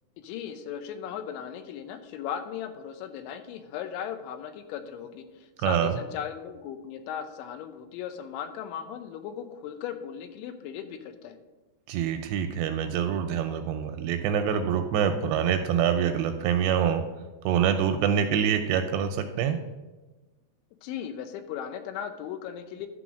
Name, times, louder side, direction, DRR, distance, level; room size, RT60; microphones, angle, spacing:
voice 1, 0.2-11.4 20.8-22.9, left 9 dB, 90° left, 9 dB, 3.1 m, -37 dB
voice 2, 5.6-6.0 11.9-17.0 17.5-19.6, right 8 dB, 85° right, 7 dB, 2.5 m, -25 dB
11.5 x 4.0 x 6.2 m, 1.2 s
omnidirectional pair, 5.3 m